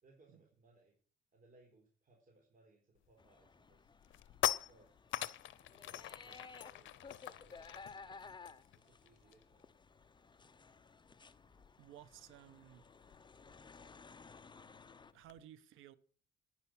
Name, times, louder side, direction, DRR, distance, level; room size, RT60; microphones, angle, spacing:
voice 1, 0.0-0.9 1.3-3.9 4.7-4.9 5.7-7.0 7.3-8.3 8.7-9.7, right 2 dB, 45° right, 4.2 m, -68 dB
sound 1, 3.0-3.3 3.7-9.6 9.9-10.1 10.4-15.4, left 13 dB, 75° left, 0.7 m, -44 dB
sound 2, 3.2-15.1, left 4 dB, 25° left, 0.7 m, -57 dB
voice 2, 8.0-8.4 11.8-12.9 15.1-15.9, right 12 dB, 90° right, 1.1 m, -57 dB
10.5 x 9.8 x 6.2 m
cardioid pair, 90°, 20 cm